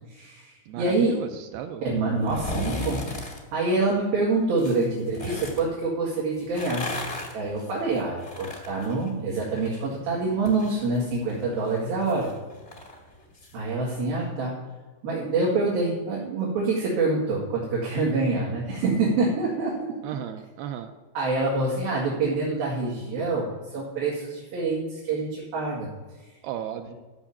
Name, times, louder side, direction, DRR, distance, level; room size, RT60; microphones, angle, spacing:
voice 1, 0.1-1.2 1.8-3.2 3.5-6.9 7.3-12.3 13.5-14.6 15.0-20.0 21.1-25.9 26.9-27.0, right 3 dB, 60° right, -5 dB, 3.8 m, -26 dB
voice 2, 0.7-1.8 20.0-20.9 26.4-26.9, right 10 dB, 85° right, 6 dB, 2.3 m, -34 dB
sound 1, 2.2-3.4 4.5-5.6 6.4-9.8 10.1-13.5 13.9-14.0, left 2 dB, 70° left, 0.6 m, -36 dB
13.0 x 6.1 x 7.2 m, 1.3 s
omnidirectional pair, 5.1 m